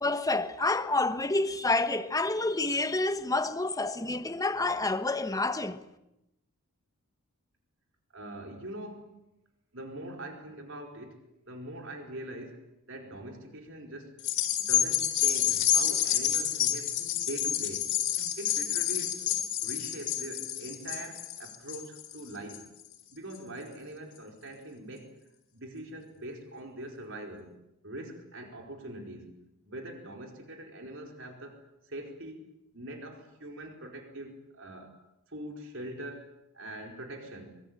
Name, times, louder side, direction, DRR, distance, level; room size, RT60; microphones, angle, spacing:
voice 1, 0.0-5.8, left 2 dB, 15° left, 1.3 m, -28 dB
voice 2, 8.1-9.2 9.7-11.2 11.5-14.2 14.6-17.0 17.2-17.9 18.4-19.2 19.6-22.7 23.1-25.2 25.5-27.5 27.8-29.3 29.6-32.4 32.7-34.9 35.3-37.5, right 1 dB, 60° right, 4.8 m, -43 dB
sound 1, 14.2-22.9 23.3-23.4, left 10 dB, 60° left, 3.9 m, -29 dB
24.0 x 23.5 x 8.8 m
head